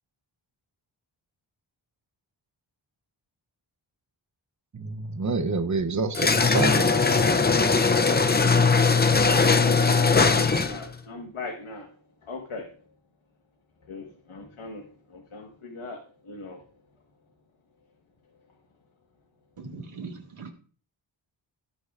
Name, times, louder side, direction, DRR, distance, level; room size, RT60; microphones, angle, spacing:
voice 1, 4.7-6.9, right 4 dB, 35° right, 0.7 m, -28 dB
sound 1, 6.1-10.9, left 4 dB, 20° left, 0.5 m, -20 dB
voice 2, 9.4-11.9 12.3-12.7 13.9-14.8 15.1-16.0 16.3-16.6, left 3 dB, 85° left, 1.5 m, -38 dB
voice 3, 19.6-20.5, right 4 dB, 85° right, 2.0 m, -40 dB
18.5 x 6.6 x 2.4 m
wide cardioid pair, 105°, 48 cm